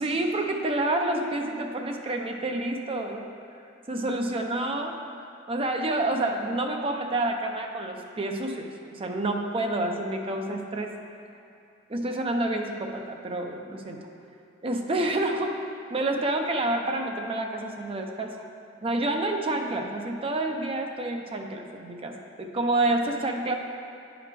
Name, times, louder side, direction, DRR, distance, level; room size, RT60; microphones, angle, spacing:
voice 1, 0.0-3.3 3.9-10.9 11.9-14.0 14.6-15.5 15.9-18.4 18.8-23.6, right 2 dB, 30° right, 3 dB, 0.5 m, -28 dB
9.6 x 4.9 x 3.3 m, 2.6 s
head